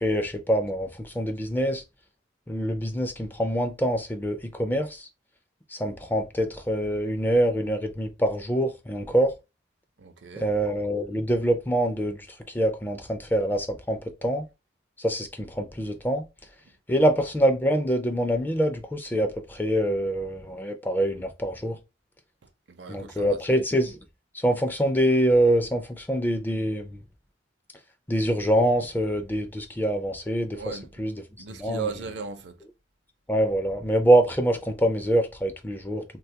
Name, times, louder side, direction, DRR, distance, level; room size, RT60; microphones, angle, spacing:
voice 1, 0.0-1.8 2.5-5.1 5.7-9.3 10.4-12.2 12.5-14.5 15.0-16.2 16.9-21.8 22.9-24.0 24.4-27.0 28.1-31.2 31.6-31.8 33.3-36.0, right 1 dB, 10° left, 0.4 m, -25 dB
voice 2, 10.0-10.5 16.9-17.0 22.7-23.4 30.5-30.9 31.4-32.6, right 5 dB, 70° right, 0.5 m, -37 dB
3.6 x 2.3 x 2.7 m
head